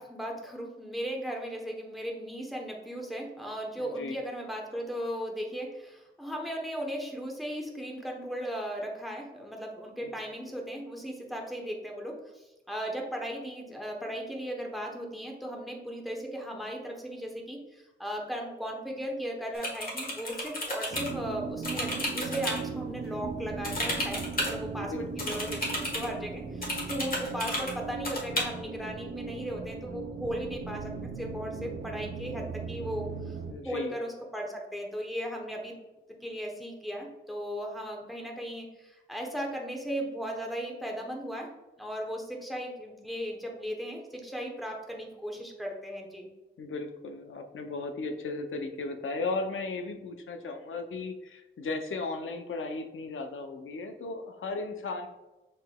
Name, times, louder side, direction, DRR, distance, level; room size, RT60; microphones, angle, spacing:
voice 1, 0.0-33.4 33.6-35.7 36.2-41.5 41.8-46.3, equal, ahead, 0 dB, 0.9 m, -37 dB
voice 2, 3.8-4.2 10.0-10.2 24.8-25.4 33.5-34.0 46.6-55.1, left 3 dB, 85° left, 6 dB, 0.5 m, -36 dB
sound 1, 19.6-21.1 21.6-22.6 23.6-24.5 25.2-26.1 26.6-27.7 28.1-28.4, left 1 dB, 45° left, 1.3 m, -32 dB
sound 2, 20.9-33.5, right 5 dB, 60° right, 0.5 m, -38 dB
6.4 x 3.7 x 2.2 m, 1.1 s
wide cardioid pair, 120°, 20 cm